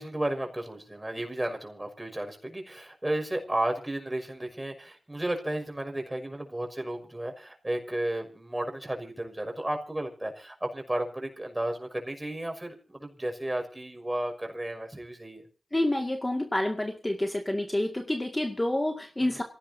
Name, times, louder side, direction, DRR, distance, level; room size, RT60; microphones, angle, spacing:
voice 1, 0.0-15.5 19.2-19.4, right 1 dB, 20° right, 5 dB, 6.0 m, -33 dB
voice 2, 15.7-19.4, left 1 dB, 25° left, 3 dB, 2.1 m, -28 dB
26.5 x 17.0 x 2.8 m, 0.35 s
cardioid pair, 45°, 0 cm